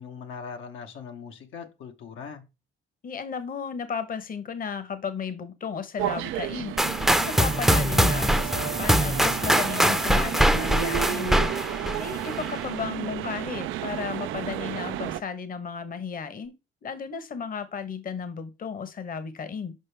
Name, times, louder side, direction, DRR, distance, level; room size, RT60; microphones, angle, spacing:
voice 1, 0.0-2.4, left 6 dB, 85° left, 1.1 m, -40 dB
voice 2, 3.0-6.8 7.1-11.4 12.0-16.5 16.8-19.7, left 6 dB, 45° left, 1.0 m, -34 dB
sound 1, 6.0-15.2, right 13 dB, 90° right, 0.4 m, -32 dB
sound 2, 6.8-12.6, equal, ahead, 0.6 m, -23 dB
6.5 x 5.3 x 3.3 m
cardioid pair, 90°, 20 cm